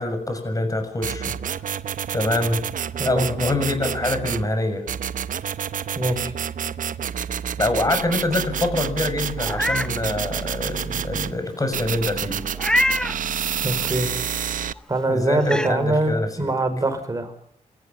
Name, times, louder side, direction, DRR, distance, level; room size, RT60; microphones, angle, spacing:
voice 1, 0.0-1.3 2.1-2.6 3.0-4.8 7.6-12.4 15.1-16.5, left 2 dB, 25° left, 7 dB, 6.8 m, -25 dB
sound 1, 1.0-4.5 4.9-11.3 11.7-14.7, right 8 dB, 75° right, 0.8 m, -29 dB
voice 2, 5.9-6.3 13.6-14.1 14.9-17.4, right 2 dB, 25° right, 6 dB, 5.4 m, -23 dB
Meow, 9.4-9.9 10.4-10.5 12.6-13.2 14.8-14.9 15.4-15.7, left 1 dB, 5° left, 1.1 m, -23 dB
28.0 x 14.5 x 8.5 m, 0.64 s
cardioid pair, 90°, 14 cm